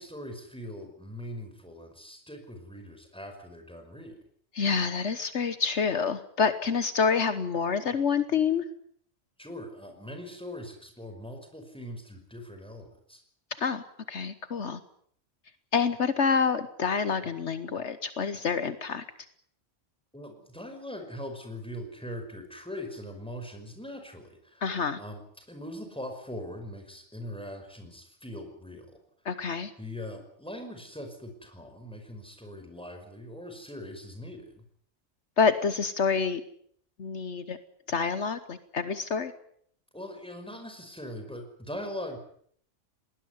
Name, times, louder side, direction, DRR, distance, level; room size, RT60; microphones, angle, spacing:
voice 1, 0.0-4.2 9.4-13.2 20.1-29.0 29.8-34.6 39.9-42.2, left 1 dB, 5° left, 5 dB, 5.4 m, -41 dB
voice 2, 4.5-8.6 13.6-14.8 15.7-19.0 24.6-25.0 29.2-29.7 35.4-36.4 37.0-37.6 37.9-39.3, left 5 dB, 70° left, 12 dB, 1.4 m, -27 dB
20.5 x 19.5 x 9.6 m, 0.64 s
omnidirectional pair, 1.2 m